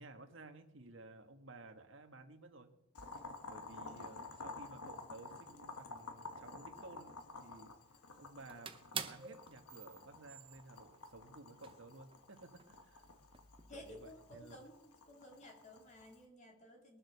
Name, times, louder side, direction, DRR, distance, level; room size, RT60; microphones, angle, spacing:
voice 1, 0.0-2.7 3.5-7.7 8.2-8.7 9.0-13.1 13.7-14.6, right 2 dB, 55° right, 6 dB, 1.6 m, -55 dB
Boiling, 2.9-16.2, left 3 dB, 85° left, 1.7 m, -52 dB
sound 1, 8.0-8.1 8.4-11.2 11.6-11.8 12.1-13.8 14.3-14.7, right 7 dB, 25° right, 0.7 m, -47 dB
voice 2, 13.7-17.0, left 1 dB, 30° left, 1 dB, 2.8 m, -55 dB
21.0 x 7.7 x 6.7 m, 0.85 s
head